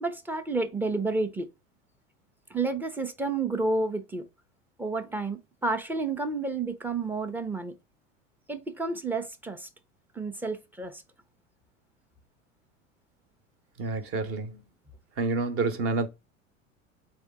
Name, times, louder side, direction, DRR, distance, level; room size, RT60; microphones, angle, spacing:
voice 1, 0.0-1.5 2.5-4.3 4.8-7.8 8.5-9.7 10.1-11.0, right 3 dB, 5° right, 0.5 m, -30 dB
voice 2, 13.8-14.6 15.2-16.1, right 3 dB, 35° right, 0.9 m, -28 dB
4.2 x 3.5 x 3.4 m
figure-of-eight pair, 80°, 40 cm